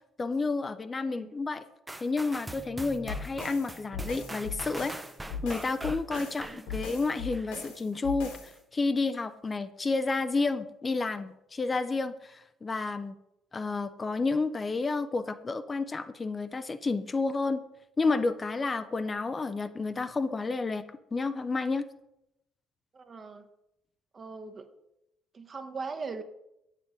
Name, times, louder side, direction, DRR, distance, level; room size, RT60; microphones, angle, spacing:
voice 1, 0.0-1.6 2.0-4.9 5.4-13.2 13.5-17.6 18.0-20.8 21.1-21.9, left 3 dB, 25° left, 11 dB, 0.6 m, -30 dB
voice 2, 1.0-1.4 6.3-6.7 22.9-23.5 24.1-24.7 25.3-26.2, right 4 dB, 35° right, 7 dB, 1.1 m, -40 dB
sound 1, 1.9-7.7 8.2-8.3, right 1 dB, 10° right, 0.7 m, -42 dB
sound 2, 3.1-8.6, left 4 dB, 70° left, 2.4 m, -39 dB
9.1 x 7.5 x 5.2 m, 0.83 s
figure-of-eight pair, 50°, 0 cm